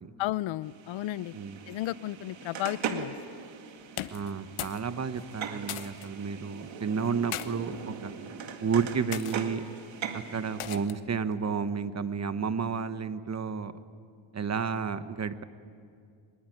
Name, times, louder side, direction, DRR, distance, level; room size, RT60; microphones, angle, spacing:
voice 1, 0.2-1.3 1.7-3.2, left 15 dB, 70° left, 19 dB, 0.6 m, -33 dB
sound 1, 0.6-10.9, right 6 dB, 65° right, 2.2 m, -40 dB
sound 2, 3.9-4.9 5.1-6.1 7.0-7.5 8.2-8.5 9.1-9.4 10.6-11.1, left 12 dB, 90° left, 1.2 m, -38 dB
voice 2, 4.1-8.1 8.6-9.7 10.1-13.7 14.3-15.4, right 6 dB, 35° right, 12 dB, 1.1 m, -31 dB
23.5 x 21.0 x 9.3 m, 2.3 s
cardioid pair, 105°, 49 cm